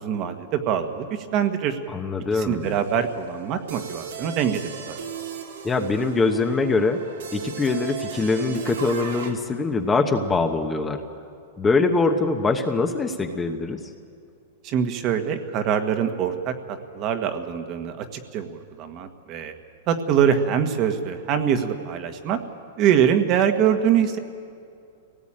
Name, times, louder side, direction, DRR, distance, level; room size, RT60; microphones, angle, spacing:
voice 1, 0.0-1.8 2.3-5.0 14.6-16.5 16.9-18.0 18.3-19.5 19.9-22.4 22.8-24.2, right 8 dB, 35° right, 7 dB, 1.5 m, -23 dB
voice 2, 1.9-2.7 5.6-7.0 7.3-11.0 11.6-13.8, left 3 dB, 10° left, 5 dB, 1.1 m, -23 dB
sound 1, 2.6-9.3, right 7 dB, 80° right, 2.9 m, -37 dB
24.0 x 18.0 x 8.9 m, 2.4 s
supercardioid pair, 155°, 0 cm